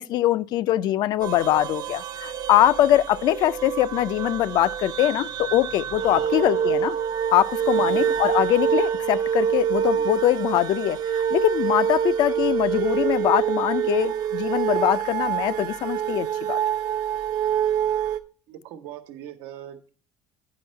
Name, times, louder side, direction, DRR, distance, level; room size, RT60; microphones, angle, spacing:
voice 1, 0.0-7.0 7.3-16.6, left 13 dB, 60° left, 0.5 m, -22 dB
sound 1, 1.2-18.2, right 8 dB, 60° right, 0.8 m, -26 dB
voice 2, 7.8-8.2 10.0-10.1 12.4-12.5 18.5-19.9, right 10 dB, 85° right, 1.1 m, -41 dB
9.6 x 5.3 x 5.6 m
cardioid pair, 125°, 8 cm